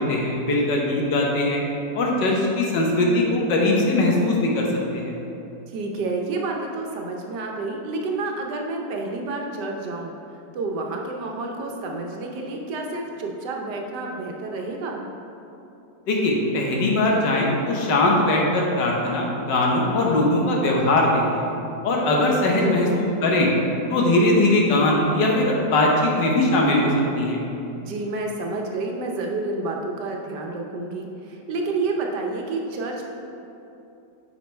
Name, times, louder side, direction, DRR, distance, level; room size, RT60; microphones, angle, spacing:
voice 1, 0.0-1.6 1.9-4.7 4.9-5.1 16.1-21.4 21.8-23.5 23.9-26.9 27.2-27.4, left 2 dB, 90° left, -1 dB, 1.6 m, -20 dB
voice 2, 5.7-10.1 10.5-15.1 22.6-23.0 27.8-33.0, right 3 dB, 80° right, 1 dB, 1.4 m, -29 dB
5.7 x 5.3 x 4.4 m, 2.8 s
omnidirectional pair, 1.8 m